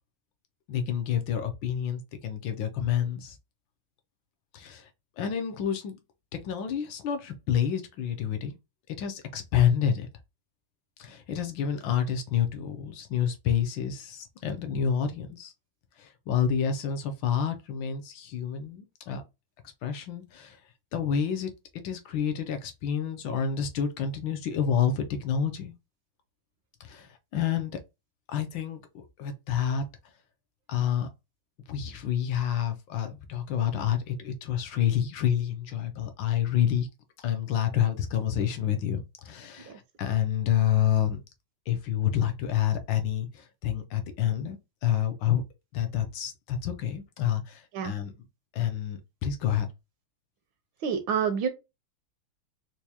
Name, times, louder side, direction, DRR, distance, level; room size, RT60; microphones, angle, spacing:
voice 1, 0.7-3.4 4.5-4.9 5.2-6.0 6.4-8.5 8.9-10.1 11.0-15.5 16.0-19.2 19.8-20.6 20.9-25.7 26.8-27.8 28.3-29.9 30.7-31.1 31.7-36.9 37.2-41.2 41.7-45.4 45.7-48.1 48.5-49.7, left 9 dB, 70° left, 1.2 m, -28 dB
voice 2, 50.8-51.5, right 7 dB, 75° right, 1.2 m, -27 dB
4.6 x 2.2 x 2.8 m
omnidirectional pair, 2.4 m